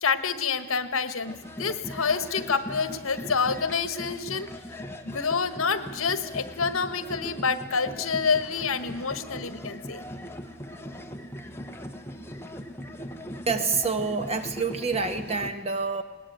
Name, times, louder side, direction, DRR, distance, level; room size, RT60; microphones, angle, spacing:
voice 1, 0.0-4.5 5.0-10.0, left 5 dB, 75° left, 11 dB, 1.4 m, -27 dB
sound 1, 1.2-15.5, equal, 10° left, 1.4 m, -39 dB
voice 2, 13.5-16.0, right 4 dB, 30° right, 7 dB, 1.5 m, -27 dB
20.5 x 19.0 x 9.3 m, 1.3 s
head